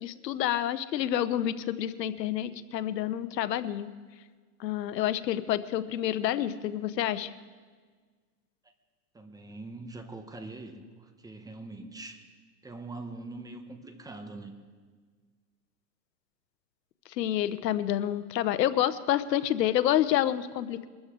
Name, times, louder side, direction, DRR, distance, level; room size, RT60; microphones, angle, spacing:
voice 1, 0.0-3.9 4.6-7.3 17.1-20.9, left 12 dB, 90° left, 14 dB, 0.9 m, -28 dB
voice 2, 9.1-12.2 12.6-14.5, right 2 dB, 10° right, 6 dB, 0.9 m, -43 dB
23.0 x 13.5 x 3.7 m, 1.5 s
supercardioid pair, 135°, 48 cm